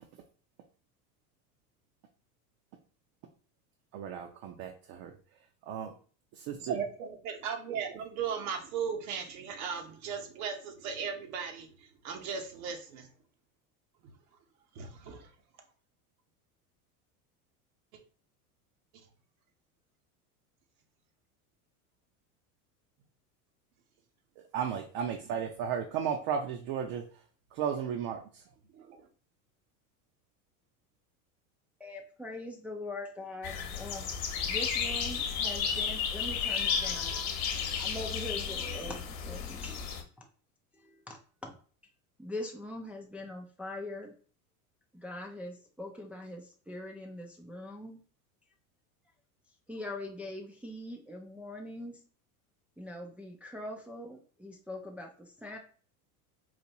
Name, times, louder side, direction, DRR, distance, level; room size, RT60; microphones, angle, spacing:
voice 1, 3.9-5.1 5.7-5.9 6.5-6.7 24.5-27.0 27.6-28.2, right 8 dB, 55° right, 3 dB, 0.7 m, -34 dB
voice 2, 6.5-13.1 14.0-14.1 14.7-15.3 25.3-25.4 28.7-29.1, right 6 dB, 75° right, 4 dB, 1.0 m, -37 dB
voice 3, 31.8-34.1 34.5-40.0 40.7-41.5 42.2-44.1 44.9-48.0 49.7-52.0 52.8-55.6, left 1 dB, 5° right, 0 dB, 0.3 m, -42 dB
sound 1, 33.4-40.0, left 7 dB, 55° left, 1.0 m, -33 dB
4.2 x 2.5 x 2.9 m, 0.41 s
supercardioid pair, 100°, 44 cm